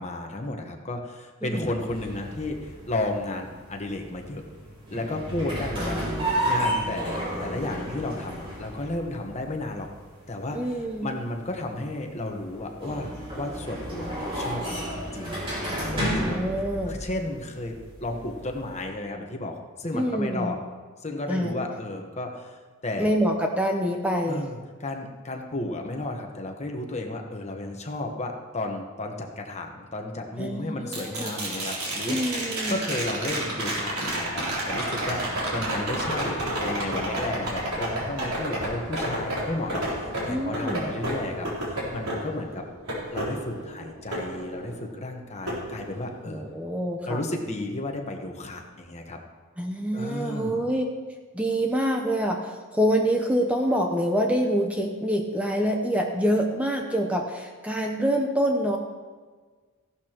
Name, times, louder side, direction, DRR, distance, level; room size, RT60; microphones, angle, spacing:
voice 1, 0.0-4.4 4.9-6.2 6.4-9.9 10.3-10.6 11.0-15.4 15.9-16.4 16.9-20.6 21.0-23.1 24.3-32.2 32.7-42.6 43.1-46.4 47.1-49.2 49.9-50.6, left 2 dB, 30° left, 3 dB, 1.2 m, -33 dB
sound 1, 1.8-18.8, right 1 dB, 25° right, 3.8 m, -33 dB
voice 2, 5.8-6.2 10.5-11.1 15.8-17.0 19.9-20.5 21.3-21.5 23.0-24.4 30.4-31.3 32.1-32.8 40.3-40.9 46.3-47.2 49.6-50.8 51.3-58.8, equal, 5° right, 2 dB, 0.8 m, -26 dB
sound 2, 30.9-45.0 45.5-46.5 48.7-48.8, right 1 dB, 85° right, 3.6 m, -31 dB
15.5 x 11.5 x 3.0 m, 1.5 s
head